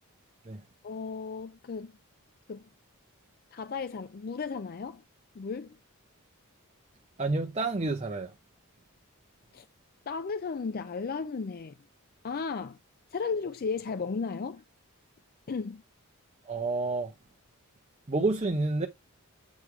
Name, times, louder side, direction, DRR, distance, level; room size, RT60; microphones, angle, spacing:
voice 1, 0.8-1.9 2.5-2.7 3.5-5.0 5.3-5.8 9.5-9.6 10.1-11.8 12.2-12.8 13.1-14.6 15.5-15.8, left 5 dB, 45° left, 0.4 m, -34 dB
voice 2, 7.2-8.3 16.4-17.1 18.1-18.9, right 3 dB, 30° right, 0.7 m, -29 dB
8.2 x 3.3 x 4.6 m
head